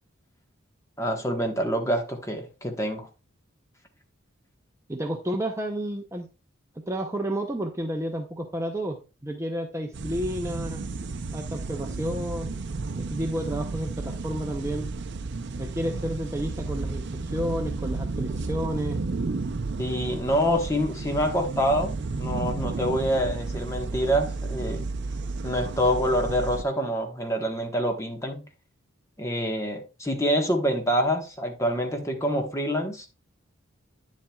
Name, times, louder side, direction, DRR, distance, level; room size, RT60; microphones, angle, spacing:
voice 1, 1.0-3.1 19.8-24.8 25.4-28.4 29.2-33.1, equal, 15° left, 1.3 m, -26 dB
voice 2, 4.9-6.3 6.9-10.8 11.3-12.5 13.0-14.9 15.6-19.0, equal, 15° right, 0.6 m, -31 dB
sound 1, 9.9-26.6, right 3 dB, 60° right, 0.5 m, -32 dB
9.9 x 7.4 x 2.3 m
head